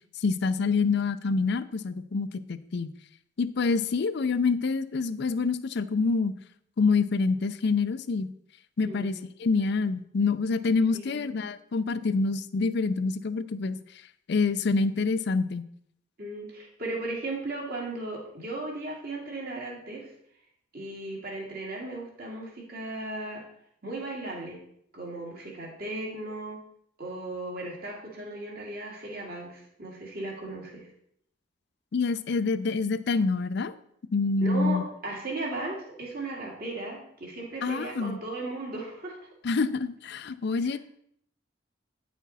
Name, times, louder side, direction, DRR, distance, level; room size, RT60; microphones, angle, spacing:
voice 1, 0.2-2.9 3.4-6.4 6.8-8.3 8.8-13.8 14.3-15.7 31.9-33.7 34.1-34.8 37.6-38.2 39.4-40.8, left 4 dB, 60° left, 13 dB, 0.5 m, -26 dB
voice 2, 10.9-11.4 16.2-20.1 20.7-23.4 23.8-24.6 24.9-26.6 27.0-30.9 34.4-39.2 40.7-40.8, right 2 dB, 50° right, -2 dB, 2.2 m, -36 dB
9.3 x 6.1 x 4.1 m, 0.70 s
head